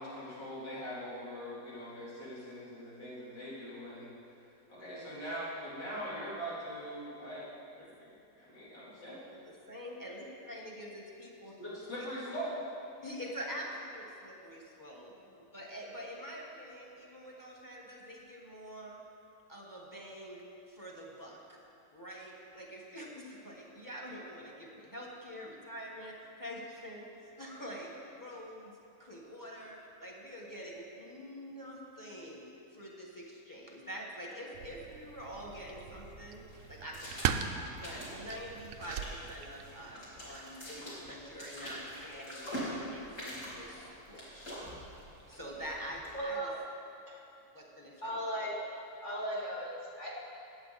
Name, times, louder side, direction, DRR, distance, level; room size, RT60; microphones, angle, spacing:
voice 1, 0.0-4.1 4.7-7.4 7.7-9.2 11.6-12.6, equal, 70° left, -10 dB, 4.1 m, -42 dB
voice 2, 9.3-11.5 13.0-15.1 15.5-19.0 19.5-20.4 20.7-21.6 21.9-27.9 28.2-28.7 29.0-32.4 32.7-36.4 36.7-37.5 37.8-44.6 45.3-46.5 47.5-48.2, equal, 10° left, -2 dB, 1.3 m, -45 dB
sound 1, 34.5-39.9, right 8 dB, 75° right, 0.7 m, -39 dB
sound 2, 35.3-46.2, equal, 45° left, 3.4 m, -45 dB
voice 3, 46.1-46.5 47.1-47.2 48.0-48.6 49.0-50.1, right 1 dB, 25° left, -5 dB, 2.1 m, -37 dB
17.5 x 7.9 x 4.2 m, 2.7 s
omnidirectional pair, 2.0 m